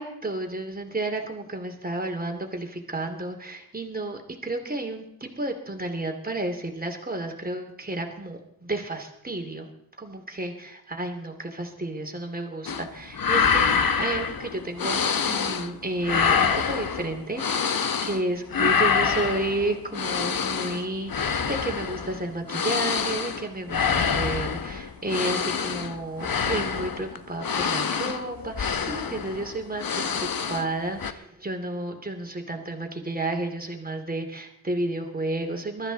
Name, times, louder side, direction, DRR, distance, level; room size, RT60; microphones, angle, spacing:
voice 1, 0.0-9.7 10.0-30.1 30.5-35.9, right 2 dB, 25° right, 4 dB, 2.5 m, -32 dB
sound 1, 12.7-12.9 13.1-15.7 16.0-18.2 18.5-30.7 31.0-31.1, left 6 dB, 60° left, 1.0 m, -26 dB
22.5 x 13.5 x 4.0 m, 0.77 s
wide cardioid pair, 95°, 38 cm